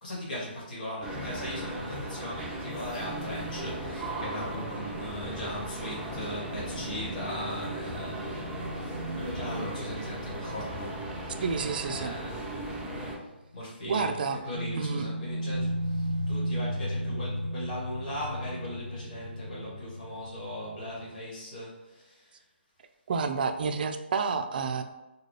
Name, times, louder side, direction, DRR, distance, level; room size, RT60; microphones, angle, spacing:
voice 1, 0.0-11.4 11.8-12.7 13.0-22.4, left 1 dB, 45° left, -5 dB, 1.4 m, -39 dB
sound 1, 1.0-13.1, right 1 dB, 5° right, 0.8 m, -37 dB
sound 2, 7.5-12.9 13.2-13.3 14.5-21.1, equal, 80° left, 1.1 m, -36 dB
voice 2, 11.4-12.2 13.9-14.4 14.7-15.1 23.1-24.8, right 5 dB, 50° right, 7 dB, 0.4 m, -29 dB
4.0 x 2.2 x 3.2 m, 1.0 s
hypercardioid pair, 145°, 6 cm